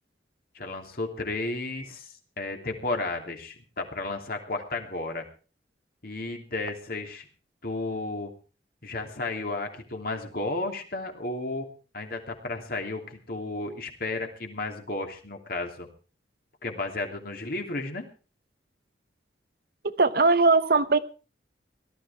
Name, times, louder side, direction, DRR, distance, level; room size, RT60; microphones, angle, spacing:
voice 1, 0.5-5.2 6.0-7.3 7.6-8.3 8.8-11.7 11.9-15.9 16.6-18.1, left 2 dB, 60° left, 4 dB, 2.9 m, -33 dB
voice 2, 19.8-21.0, right 3 dB, 60° right, 13 dB, 0.9 m, -20 dB
18.0 x 13.0 x 4.4 m, 0.35 s
head